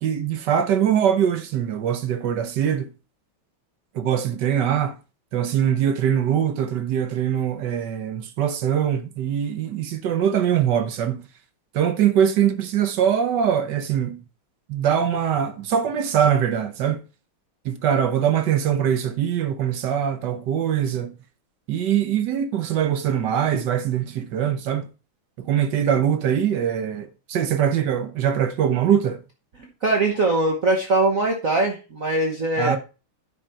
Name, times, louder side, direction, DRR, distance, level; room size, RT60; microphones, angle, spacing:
voice 1, 0.0-2.9 3.9-5.0 5.3-11.3 11.7-14.2 14.7-17.0 17.6-21.1 21.7-24.9 25.4-29.2 32.6-32.8, right 9 dB, 65° right, 1.3 m, -22 dB
voice 2, 29.8-32.8, right 2 dB, 45° right, 1.3 m, -21 dB
10.5 x 5.0 x 4.5 m
omnidirectional pair, 2.3 m